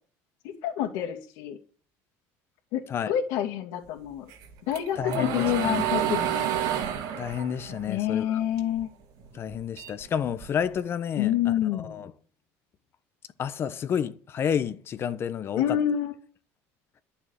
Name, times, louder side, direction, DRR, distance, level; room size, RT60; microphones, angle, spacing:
voice 1, 0.4-1.6 2.7-2.8 3.1-4.3 4.7-6.5 7.9-8.9 11.2-12.1 15.6-16.1, left 11 dB, 75° left, 2.4 m, -27 dB
sound 1, 4.3-8.8 9.2-10.7, right 9 dB, 70° right, 3.1 m, -30 dB
voice 2, 5.0-5.9 7.2-8.4 9.3-12.1 13.4-15.8, left 8 dB, 35° left, 1.0 m, -30 dB
11.5 x 7.0 x 8.9 m
cardioid pair, 140°, 7 cm